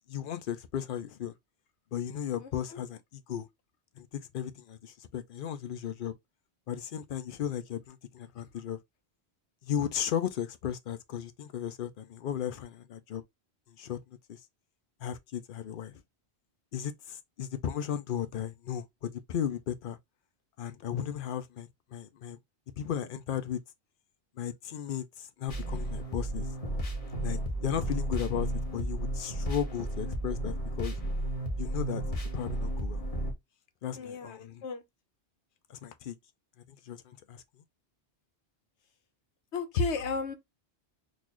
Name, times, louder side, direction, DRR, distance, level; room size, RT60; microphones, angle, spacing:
voice 1, 0.1-1.3 1.9-3.0 3.3-3.5 4.0-4.1 4.3-6.1 6.7-8.8 9.6-13.2 13.8-14.0 14.3-14.4 15.0-15.9 16.7-20.0 20.6-22.4 22.8-23.6 24.4-26.5 27.2-28.5 28.7-31.0 31.6-32.0 32.3-33.0 33.8-34.6 35.7-36.1 36.9-37.4, left 9 dB, 60° left, 0.7 m, -35 dB
voice 2, 2.4-2.8 33.9-34.8 39.5-40.3, left 4 dB, 85° left, 1.1 m, -33 dB
sound 1, 25.5-33.3, right 1 dB, 35° left, 1.0 m, -33 dB
4.0 x 2.6 x 3.0 m
omnidirectional pair, 1.1 m